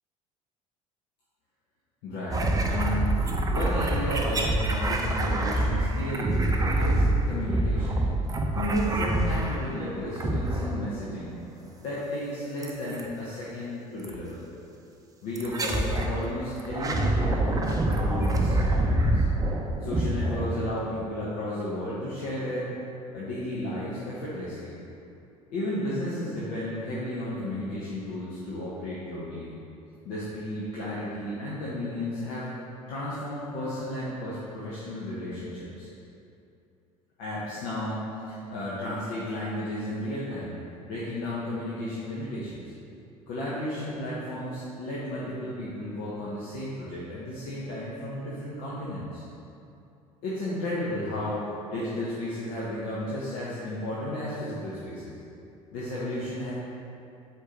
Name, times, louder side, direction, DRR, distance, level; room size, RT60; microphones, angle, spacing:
voice 1, 2.0-11.4 11.8-14.4 15.2-19.3 19.8-22.7 23.1-24.8 25.5-29.5 30.0-32.5 32.9-35.9 37.2-40.6 40.9-42.7 43.3-49.2 50.2-55.1 55.7-56.5, left 1 dB, 60° left, -8 dB, 1.1 m, -33 dB
sound 1, 2.3-9.8 10.2-10.9 12.6-13.1 14.0-14.2 15.4-16.2 16.6-21.0, right 1 dB, 20° right, 0.6 m, -26 dB
4.6 x 4.4 x 5.1 m, 2.7 s
figure-of-eight pair, 60°, 18 cm